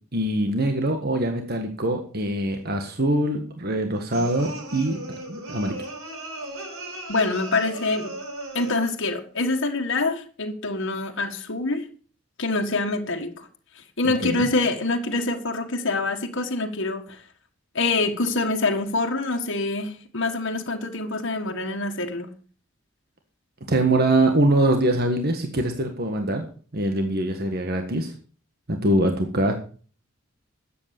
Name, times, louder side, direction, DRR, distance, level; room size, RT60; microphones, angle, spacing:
voice 1, 0.1-5.0 5.3-5.7 14.0-14.5 23.7-26.4 26.7-28.1 28.7-29.5, right 1 dB, 45° right, 1.6 m, -23 dB
sound 1, 4.1-9.0, right 1 dB, 80° right, 4.9 m, -36 dB
voice 2, 7.1-8.1 8.5-11.9 12.4-13.5 13.8-17.2 17.8-22.3, left 3 dB, 60° left, 1.7 m, -25 dB
13.0 x 8.6 x 6.7 m
head